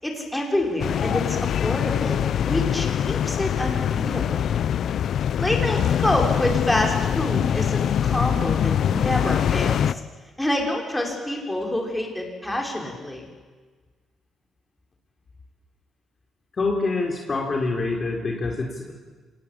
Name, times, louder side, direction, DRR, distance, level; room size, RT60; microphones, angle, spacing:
voice 1, 0.0-4.5 5.4-10.0 10.4-13.3, left 1 dB, 10° left, 1 dB, 6.0 m, -27 dB
sound 1, 0.8-9.9, left 9 dB, 65° left, 0.6 m, -23 dB
voice 2, 16.5-18.9, left 3 dB, 35° left, 1 dB, 3.7 m, -26 dB
26.0 x 19.5 x 8.8 m, 1.4 s
cardioid pair, 90°, 0 cm